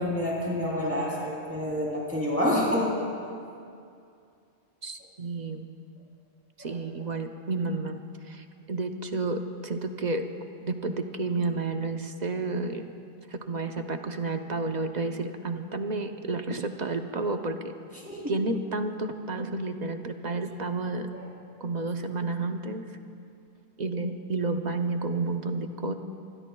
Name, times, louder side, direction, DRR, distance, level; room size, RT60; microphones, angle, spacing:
voice 1, 0.0-2.9 6.6-6.8 17.9-18.3 21.1-21.3, left 1 dB, 10° right, -6 dB, 3.4 m, -28 dB
voice 2, 4.8-5.7 6.6-10.2 10.6-13.0 13.3-17.7 18.3-21.1 21.6-22.8 23.8-25.9, right 3 dB, 45° right, 6 dB, 0.8 m, -31 dB
25.0 x 20.0 x 2.3 m, 2.4 s
omnidirectional pair, 1.1 m